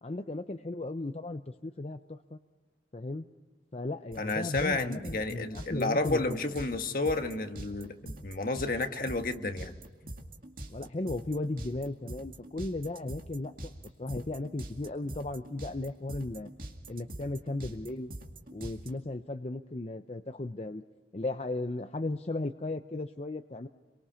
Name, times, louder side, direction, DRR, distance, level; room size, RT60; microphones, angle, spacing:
voice 1, 0.0-2.4 2.9-3.3 3.7-6.4 10.7-13.7 14.0-16.5 16.9-18.1 18.5-20.9 21.1-23.7, left 2 dB, 35° left, 8 dB, 0.6 m, -36 dB
sound 1, 4.1-18.9, right 1 dB, 50° right, 2.3 m, -43 dB
voice 2, 4.2-9.7, left 2 dB, 50° left, 6 dB, 1.5 m, -31 dB
27.5 x 24.0 x 5.7 m, 1.3 s
head